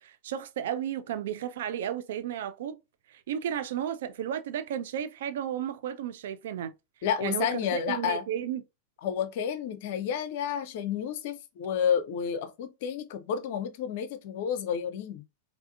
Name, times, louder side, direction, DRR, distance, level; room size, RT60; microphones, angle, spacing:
voice 1, 0.0-2.8 3.1-6.7 7.2-8.6, right 9 dB, 55° right, 0.3 m, -33 dB
voice 2, 7.0-8.2 9.0-15.2, left 8 dB, 50° left, 0.4 m, -30 dB
3.4 x 2.5 x 2.4 m
figure-of-eight pair, 90°, 0 cm